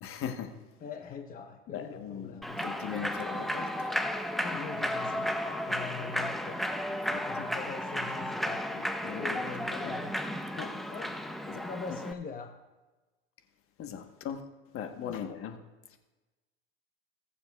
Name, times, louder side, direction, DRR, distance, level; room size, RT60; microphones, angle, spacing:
voice 1, 0.0-0.5 1.7-3.9 6.6-6.8 7.1-7.5 8.7-10.0 10.6-10.7 11.5-11.7 13.8-14.4 14.7-15.6, left 8 dB, 45° left, 6 dB, 1.2 m, -40 dB
voice 2, 0.8-2.6 4.4-6.6 7.2-8.7 9.1-10.1 10.5-11.2 11.6-12.5 15.0-15.3, left 6 dB, 25° left, 4 dB, 1.0 m, -43 dB
Human voice / Clapping / Cheering, 2.4-12.1, equal, ahead, 0.7 m, -34 dB
20.5 x 7.0 x 2.4 m, 1.2 s
hypercardioid pair, 90°, 32 cm